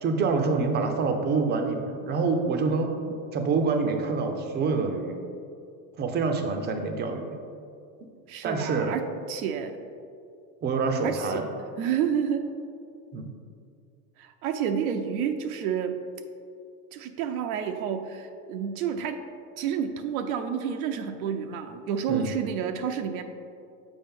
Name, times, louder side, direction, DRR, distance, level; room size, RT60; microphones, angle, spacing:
voice 1, 0.0-2.9 3.3-5.2 6.0-7.4 8.4-8.9 10.6-11.5 13.1-13.3 22.1-22.3, right 4 dB, 25° right, 5 dB, 0.5 m, -26 dB
voice 2, 8.3-9.9 11.0-11.4 11.8-12.5 14.2-16.0 16.9-19.2 19.6-23.2, right 8 dB, 80° right, 6 dB, 0.7 m, -30 dB
7.1 x 5.0 x 3.7 m, 2.4 s
supercardioid pair, 140°, 42 cm